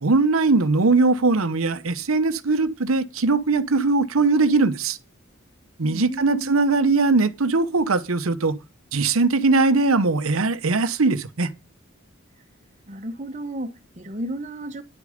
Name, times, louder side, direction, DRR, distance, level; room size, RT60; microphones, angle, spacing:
voice 1, 0.0-5.0 5.8-8.6 8.9-11.5, right 3 dB, 90° right, 0.9 m, -20 dB
voice 2, 5.9-6.5 12.9-14.8, right 1 dB, 35° right, 1.1 m, -33 dB
10.5 x 8.4 x 5.1 m
head